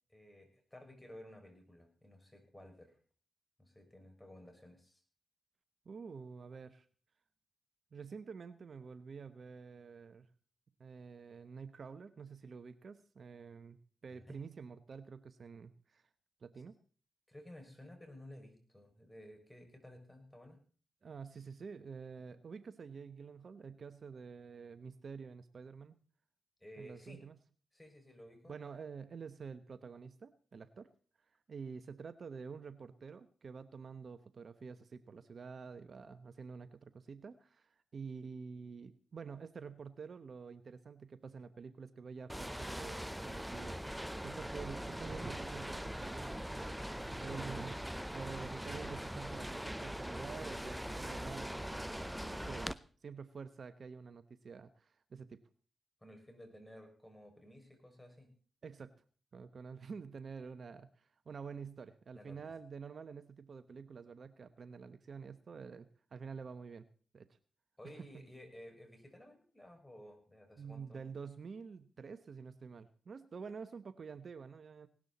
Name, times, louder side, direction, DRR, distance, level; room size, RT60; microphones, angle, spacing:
voice 1, 0.1-3.0 3.6-5.0 14.1-14.4 17.3-20.6 26.6-27.2 27.7-28.5 56.0-58.3 62.1-62.5 67.8-71.0, left 1 dB, 15° left, 4 dB, 6.0 m, -55 dB
voice 2, 5.8-6.9 7.9-10.3 10.8-16.0 16.4-16.7 21.0-25.9 26.8-27.4 28.5-30.9 31.5-43.8 44.2-52.8 53.0-55.4 58.6-58.9 59.3-66.9 67.1-67.3 67.8-68.1 70.6-74.9, right 5 dB, 65° right, 12 dB, 1.0 m, -48 dB
sound 1, 42.3-52.7, equal, 5° right, 0.7 m, -42 dB
sound 2, 44.6-51.4, right 2 dB, 30° right, 2.7 m, -53 dB
18.5 x 12.5 x 4.2 m, 0.41 s
supercardioid pair, 50°, 0 cm